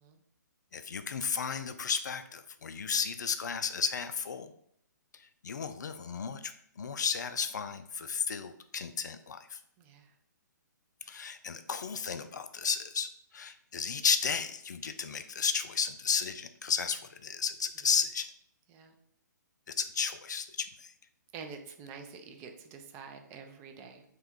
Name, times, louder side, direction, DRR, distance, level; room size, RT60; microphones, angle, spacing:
voice 1, 0.7-4.5 5.4-6.5 6.8-9.6 11.1-13.1 13.3-18.3 19.8-20.9, left 6 dB, 65° left, 10 dB, 0.4 m, -33 dB
voice 2, 9.8-10.1 18.7-18.9 21.3-24.0, right 5 dB, 20° right, 4 dB, 0.4 m, -47 dB
3.0 x 2.2 x 3.5 m, 0.69 s
figure-of-eight pair, 130°, 10 cm